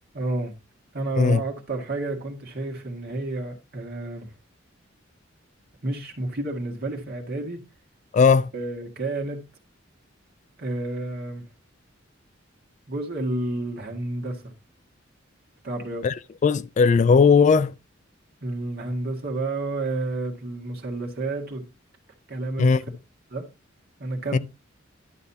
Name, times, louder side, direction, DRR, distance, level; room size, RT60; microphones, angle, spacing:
voice 1, 0.1-0.5 0.9-4.3 5.8-7.6 8.5-9.4 10.6-11.4 12.9-14.5 15.6-16.1 18.4-21.7 22.3-22.7 23.3-23.5 24.0-24.4, right 2 dB, 50° right, 1.9 m, -30 dB
voice 2, 8.1-8.5 16.0-16.1 16.4-17.7 22.6-22.8 24.3-24.4, left 5 dB, 40° left, 0.3 m, -17 dB
11.0 x 6.5 x 2.8 m
head